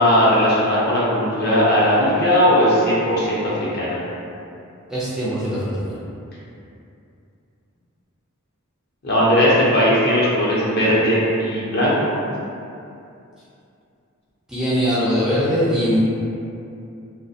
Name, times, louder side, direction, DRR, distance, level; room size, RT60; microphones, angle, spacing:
voice 1, 0.0-4.0 9.0-12.1, equal, 50° left, -7 dB, 0.6 m, -18 dB
voice 2, 4.9-5.9 14.5-16.0, equal, 5° right, -10 dB, 0.3 m, -21 dB
2.3 x 2.1 x 2.6 m, 2.6 s
head